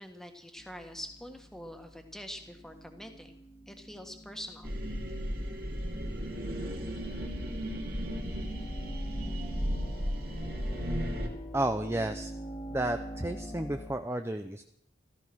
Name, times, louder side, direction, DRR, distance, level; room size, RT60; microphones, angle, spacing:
voice 1, 0.0-3.4 3.7-4.7, equal, ahead, 5 dB, 1.7 m, -45 dB
sound 1, 0.6-14.0, equal, 30° left, 1.7 m, -46 dB
sound 2, 4.6-11.3, equal, 50° right, 2.7 m, -34 dB
voice 2, 11.5-12.3 12.7-14.6, right 1 dB, 15° right, 7 dB, 0.6 m, -32 dB
15.0 x 14.0 x 6.2 m, 0.78 s
head